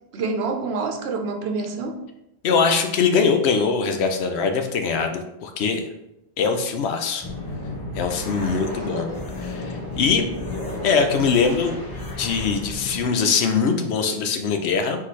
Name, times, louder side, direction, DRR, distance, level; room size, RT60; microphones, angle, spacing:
voice 1, 0.1-2.0 8.4-9.2, right 4 dB, 80° right, 4 dB, 0.9 m, -28 dB
voice 2, 2.4-5.9 6.4-7.3 7.9-9.1 9.4-10.3 10.8-11.8 12.2-15.0, left 5 dB, 80° left, 5 dB, 0.9 m, -22 dB
sound 1, 7.2-13.0, left 2 dB, 20° left, 1.0 m, -32 dB
4.0 x 3.1 x 4.1 m, 0.85 s
omnidirectional pair, 1.1 m